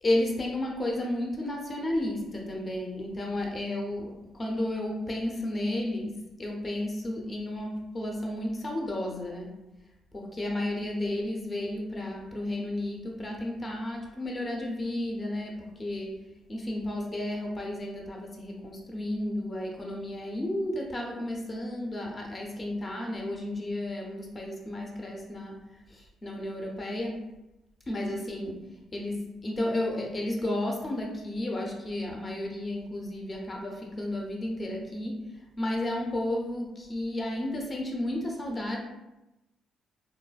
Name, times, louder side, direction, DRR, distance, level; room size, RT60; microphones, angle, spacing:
voice 1, 0.0-9.6 10.1-16.2 16.5-27.2 27.9-38.8, left 1 dB, 30° left, 0 dB, 0.6 m, -32 dB
4.0 x 2.0 x 2.3 m, 0.97 s
cardioid pair, 90°, 0 cm